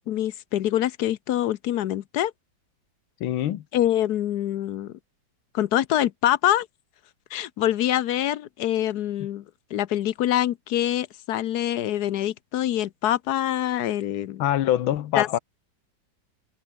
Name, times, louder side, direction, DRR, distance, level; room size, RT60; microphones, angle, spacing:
voice 1, 0.1-2.3 3.7-4.9 5.5-6.7 7.3-9.4 9.7-14.4 15.1-15.3, left 12 dB, 65° left, 1.1 m, -25 dB
voice 2, 3.2-3.6 14.4-15.4, left 12 dB, 90° left, 1.8 m, -24 dB
omnidirectional pair, 2.1 m